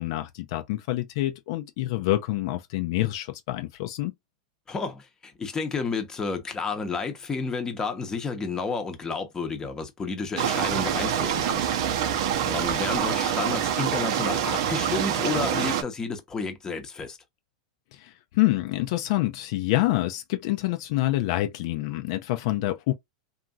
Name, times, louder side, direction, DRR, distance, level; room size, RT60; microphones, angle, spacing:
voice 1, 0.0-4.1 17.9-22.9, left 17 dB, 60° left, 0.5 m, -27 dB
voice 2, 4.7-17.2, left 4 dB, 20° left, 0.8 m, -31 dB
sound 1, 10.4-15.8, right 9 dB, 65° right, 0.6 m, -26 dB
2.9 x 2.5 x 2.3 m
hypercardioid pair, 110°, 3 cm